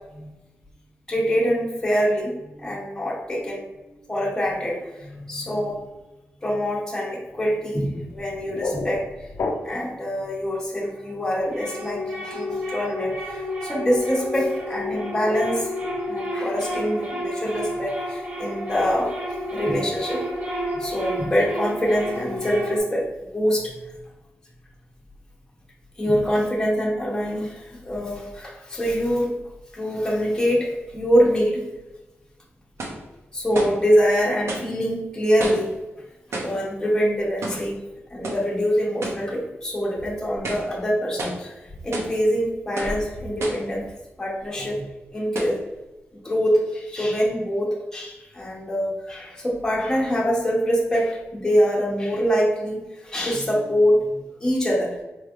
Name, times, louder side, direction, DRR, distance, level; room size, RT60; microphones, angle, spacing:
voice 1, 1.1-3.6 4.1-5.8 6.4-9.1 9.6-15.7 16.1-19.1 19.5-20.2 20.8-23.0 23.3-23.8 26.0-29.3 29.7-31.6 33.3-35.7 36.4-37.7 38.1-41.5 41.8-43.8 44.2-44.8 45.1-45.6 46.2-54.9, equal, 15° left, -4 dB, 0.8 m, -24 dB
sound 1, 8.1-10.0, left 3 dB, 65° left, 0.4 m, -30 dB
sound 2, 10.8-22.8, left 1 dB, 30° right, 0.8 m, -31 dB
sound 3, 31.8-31.9 32.8-33.1 33.5-33.8 34.5-34.7 35.4-35.8 36.3-36.6 37.4-37.7 38.2-38.5 39.0-39.3 39.7-39.8 40.3-40.7 41.2-41.5 41.9-42.2 42.8-43.0 43.4-43.7 44.4-44.5 45.3-45.6, right 2 dB, 70° right, 0.6 m, -31 dB
4.3 x 3.2 x 2.4 m, 1.1 s
wide cardioid pair, 175°, 5 cm